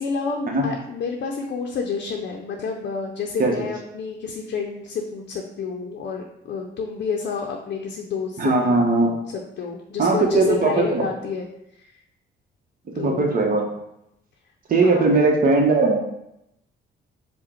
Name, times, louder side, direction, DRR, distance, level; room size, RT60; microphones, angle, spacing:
voice 1, 0.0-8.7 9.3-11.5 11.8-11.9 12.9-13.3 14.8-15.1, left 5 dB, 60° left, 1 dB, 0.6 m, -29 dB
voice 2, 8.4-9.1 10.0-11.1 13.0-13.7 14.7-16.0, right 3 dB, 45° right, 1 dB, 1.0 m, -19 dB
4.8 x 2.2 x 4.3 m, 0.82 s
cardioid pair, 90°, 20 cm